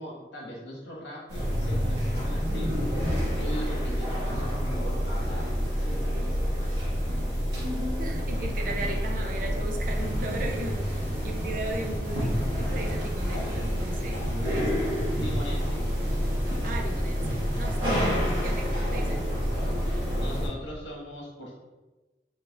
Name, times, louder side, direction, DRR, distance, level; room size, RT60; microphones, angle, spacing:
voice 1, 0.0-3.0 3.4-7.0 15.2-15.8 19.9-21.6, equal, 90° left, -3 dB, 1.3 m, -40 dB
sound 1, 1.3-20.5, equal, 80° right, 1.3 m, -28 dB
voice 2, 8.0-14.9 16.6-19.3, right 2 dB, 50° right, 2 dB, 0.5 m, -37 dB
sound 2, 9.8-18.7, equal, 15° right, 0.9 m, -38 dB
3.3 x 3.1 x 3.5 m, 1.2 s
head